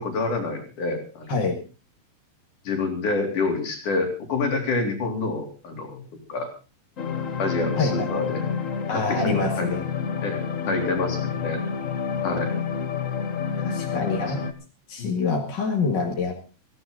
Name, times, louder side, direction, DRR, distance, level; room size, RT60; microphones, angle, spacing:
voice 1, 0.0-1.4 2.7-6.0 6.3-6.5 7.4-8.4 8.9-9.7 10.2-11.6 12.2-12.5 15.0-15.1, left 3 dB, 85° left, 3 dB, 5.2 m, -27 dB
sound 1, 7.0-14.5, left 6 dB, 60° left, 0.8 m, -29 dB
voice 2, 7.8-8.2 8.9-9.9 13.6-14.4 14.9-16.5, left 4 dB, 40° left, 1 dB, 2.4 m, -26 dB
17.0 x 16.0 x 4.0 m, 0.34 s
omnidirectional pair, 3.5 m